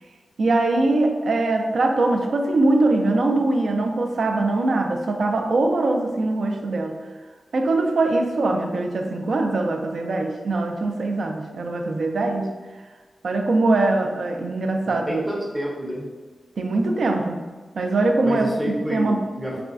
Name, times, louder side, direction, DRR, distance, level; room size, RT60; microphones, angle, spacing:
voice 1, 0.4-7.0 7.5-12.5 13.2-15.2 16.6-17.4 17.8-19.2, right 2 dB, 60° right, 3 dB, 0.4 m, -22 dB
voice 2, 14.8-16.1 18.2-19.6, equal, 10° right, -4 dB, 0.6 m, -29 dB
4.8 x 2.3 x 2.4 m, 1.4 s
wide cardioid pair, 170°, 0 cm